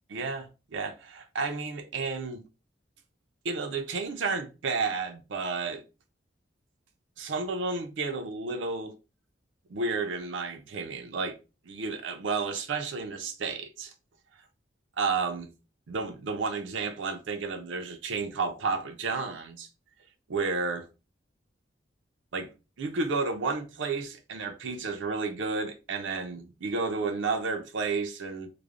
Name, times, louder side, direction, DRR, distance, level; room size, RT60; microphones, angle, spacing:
voice 1, 0.1-2.4 3.4-5.8 7.2-9.0 9.7-11.4 11.6-13.9 15.0-15.5 15.9-19.7 20.3-20.9 22.3-22.5 22.8-28.5, right 4 dB, 90° right, 0.5 m, -31 dB
3.2 x 2.0 x 2.4 m
head